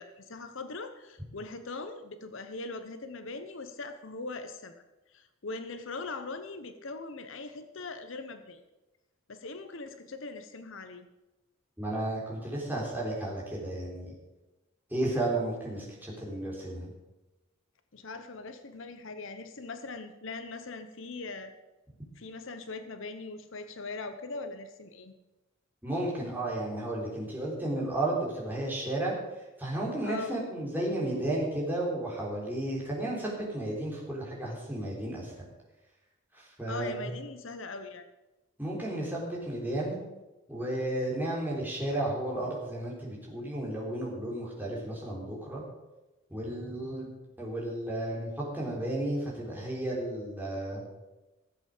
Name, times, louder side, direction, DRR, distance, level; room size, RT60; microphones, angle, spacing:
voice 1, 0.0-4.7 5.1-8.6 9.3-11.1 17.9-21.5 22.1-25.1 30.0-30.4 36.7-38.1, left 3 dB, 60° left, 9 dB, 0.8 m, -41 dB
voice 2, 11.8-14.1 14.9-16.9 25.8-29.1 29.6-35.5 36.3-37.1 38.6-40.0 40.5-45.6 46.3-50.8, right 1 dB, 10° right, -4 dB, 3.6 m, -33 dB
15.0 x 7.8 x 6.6 m, 1.1 s
head